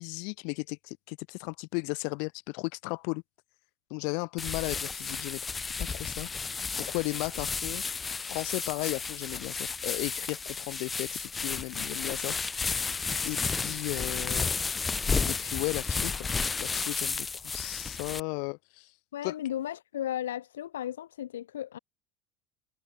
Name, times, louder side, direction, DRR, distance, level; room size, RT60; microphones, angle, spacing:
voice 1, 0.0-3.2 3.9-5.5 5.8-6.3 6.8-7.8 8.2-12.8 13.2-14.5 15.2-16.3 16.6-18.9 19.2-19.4, left 39 dB, 65° left, 3.7 m, -35 dB
sound 1, 4.4-18.2, left 4 dB, 20° left, 1.0 m, -32 dB
voice 2, 19.1-21.8, left 11 dB, 85° left, 1.8 m, -35 dB
hypercardioid pair, 85°, 0 cm